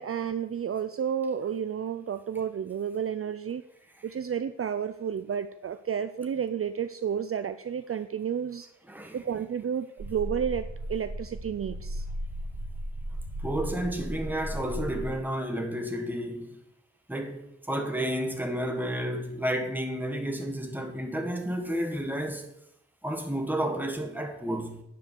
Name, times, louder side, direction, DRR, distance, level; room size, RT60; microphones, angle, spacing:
voice 1, 0.0-3.6 4.0-8.7 9.1-12.0, right 8 dB, 50° right, 0.4 m, -31 dB
voice 2, 8.9-9.2 13.4-16.6 17.1-22.4 23.0-24.8, equal, 5° right, 1.5 m, -31 dB
sound 1, 10.0-15.1, equal, 85° right, 2.1 m, -36 dB
9.8 x 5.3 x 6.8 m
wide cardioid pair, 110°, 29 cm